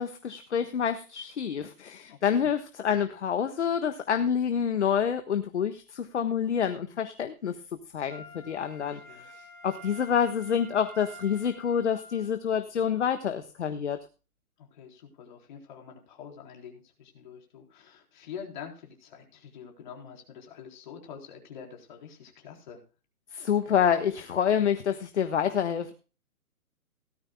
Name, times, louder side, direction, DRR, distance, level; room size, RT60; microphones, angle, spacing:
voice 1, 0.0-7.5 7.9-9.0 9.6-14.0 23.3-25.9, left 8 dB, 50° left, 7 dB, 1.4 m, -27 dB
voice 2, 2.1-2.5 8.8-9.3 14.6-22.8, left 7 dB, 30° left, 1 dB, 4.0 m, -46 dB
Wind instrument woodwind instrument, 8.1-12.3 12.9-13.0, equal, 15° right, 4.0 m, -49 dB
18.0 x 13.5 x 2.2 m, 0.34 s
hypercardioid pair, 165°, 45 cm